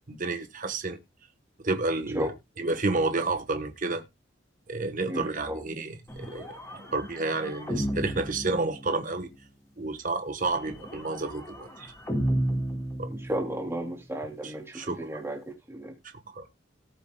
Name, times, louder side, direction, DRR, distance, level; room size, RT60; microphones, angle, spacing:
voice 1, 0.1-1.0 1.6-2.3 2.6-4.0 4.7-9.3 9.8-11.9 13.0-13.1 14.4-15.0 16.3-16.5, right 3 dB, 45° right, 1.2 m, -30 dB
voice 2, 5.1-5.6 13.1-15.4 15.7-15.9, right 1 dB, 15° right, 3.0 m, -33 dB
sound 1, 6.1-9.3 10.4-13.7, right 1 dB, 20° left, 4.0 m, -33 dB
18.0 x 6.9 x 2.2 m
head